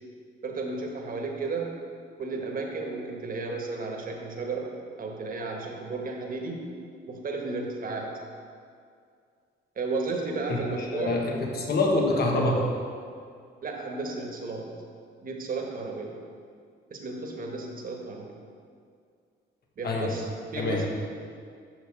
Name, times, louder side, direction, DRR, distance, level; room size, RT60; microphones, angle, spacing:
voice 1, 0.4-1.8 2.2-4.7 5.0-6.7 7.1-8.2 9.8-11.3 13.6-14.7 15.2-16.1 16.9-18.3 19.8-20.9, right 3 dB, 45° right, 1 dB, 1.3 m, -33 dB
voice 2, 10.9-12.7 19.8-20.1 20.6-20.8, left 2 dB, 50° left, 0 dB, 1.3 m, -25 dB
6.2 x 5.1 x 6.4 m, 2.2 s
cardioid pair, 90°, 20 cm